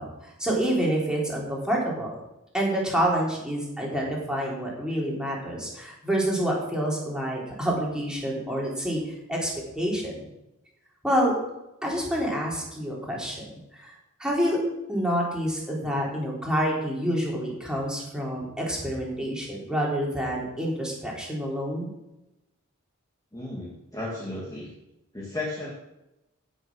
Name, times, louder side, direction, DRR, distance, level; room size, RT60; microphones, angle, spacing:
voice 1, 0.0-2.2 2.5-9.5 9.8-10.3 11.0-11.3 11.8-13.4 13.7-13.9 14.2-14.6 14.9-21.9, equal, 5° right, -3 dB, 3.7 m, -27 dB
voice 2, 23.3-24.7 25.1-25.7, left 2 dB, 15° left, -4 dB, 2.1 m, -34 dB
15.5 x 6.4 x 6.3 m, 0.92 s
head